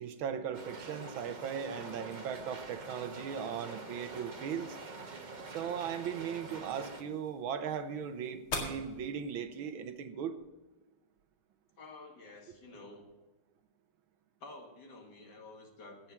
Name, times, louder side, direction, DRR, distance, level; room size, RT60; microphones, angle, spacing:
voice 1, 0.0-4.8 5.5-10.4, right 7 dB, 75° right, 10 dB, 1.6 m, -38 dB
sound 1, 0.5-7.0, right 3 dB, 35° right, 0.7 m, -45 dB
sound 2, 3.5-9.5, left 3 dB, 80° left, 3.0 m, -46 dB
voice 2, 11.8-13.1 14.4-16.1, left 2 dB, 55° left, 2 dB, 2.3 m, -50 dB
17.0 x 6.0 x 5.8 m, 1.2 s
omnidirectional pair, 2.3 m